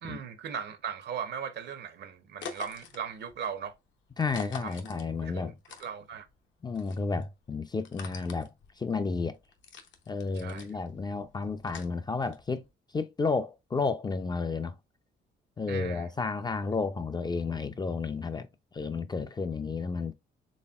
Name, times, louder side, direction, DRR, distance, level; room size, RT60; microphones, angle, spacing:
voice 1, 0.0-3.7 4.6-4.8 5.2-5.5 5.8-6.3 10.3-10.7 15.7-16.1, right 7 dB, 60° right, 0.7 m, -38 dB
Footsteps Ice A, 2.4-6.4 6.7-12.7, left 6 dB, 70° left, 0.7 m, -47 dB
voice 2, 4.2-5.5 6.6-8.5 8.8-9.4 10.1-12.6 12.9-14.7 15.6-18.5 18.7-20.1, left 4 dB, 20° left, 0.3 m, -32 dB
4.1 x 3.4 x 2.3 m
cardioid pair, 90°, 20 cm